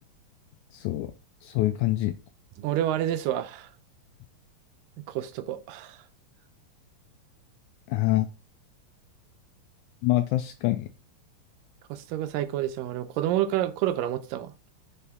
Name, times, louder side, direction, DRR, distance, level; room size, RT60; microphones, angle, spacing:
voice 1, 0.7-1.1 1.4-2.1 7.9-8.3 10.0-10.9, left 16 dB, 80° left, 1.8 m, -25 dB
voice 2, 2.6-3.7 5.0-6.0 11.9-14.5, right 12 dB, 90° right, 2.3 m, -29 dB
6.7 x 3.5 x 5.5 m
omnidirectional pair, 3.9 m